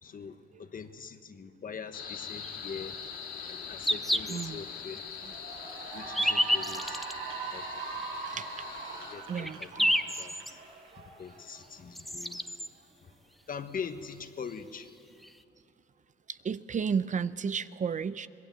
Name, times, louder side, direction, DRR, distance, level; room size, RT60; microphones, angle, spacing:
voice 1, 0.0-3.0 3.5-5.0 5.9-7.1 7.5-8.0 8.9-10.6 11.0-12.5 13.0-13.1 13.5-14.9, left 6 dB, 45° left, 9 dB, 1.3 m, -43 dB
sound 1, 1.9-9.2, left 6 dB, 65° left, 3.7 m, -43 dB
sound 2, 2.4-2.6 3.4-3.5 3.8-4.5 5.0-5.1 5.9-7.1 8.0-8.1 8.8-8.9 9.1-10.5 11.6-11.7 12.0-12.7 14.1-14.2 14.4-14.5 15.2-15.3, equal, ahead, 0.7 m, -29 dB
voice 2, 4.3-4.6 8.2-8.7 9.3-9.6 10.1-10.4 16.3-18.3, right 6 dB, 40° right, 14 dB, 0.6 m, -33 dB
Cheering / Applause, 4.4-4.7 5.1-11.7, right 4 dB, 80° right, 6.7 m, -41 dB
25.5 x 19.5 x 7.7 m, 2.7 s
cardioid pair, 90°, 20 cm